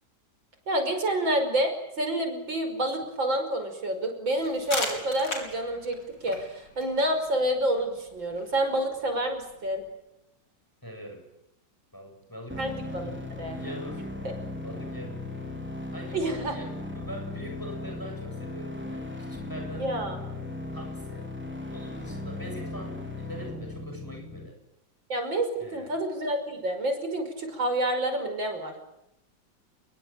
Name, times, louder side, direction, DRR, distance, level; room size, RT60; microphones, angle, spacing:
voice 1, 0.7-9.8 12.6-13.6 14.2-14.3 16.1-16.5 19.8-20.2 25.1-28.7, right 1 dB, 75° right, 6 dB, 6.2 m, -28 dB
sound 1, 4.4-9.9, left 2 dB, 65° left, 6.0 m, -39 dB
voice 2, 10.8-11.3 11.9-12.7 13.0-14.1 14.6-15.3 15.9-19.9 20.7-21.3 21.7-24.6 25.6-25.9, equal, 10° left, 3 dB, 7.9 m, -42 dB
sound 2, 12.5-24.5, left 2 dB, 5° right, 4.3 m, -37 dB
29.0 x 23.0 x 9.0 m, 0.84 s
omnidirectional pair, 2.1 m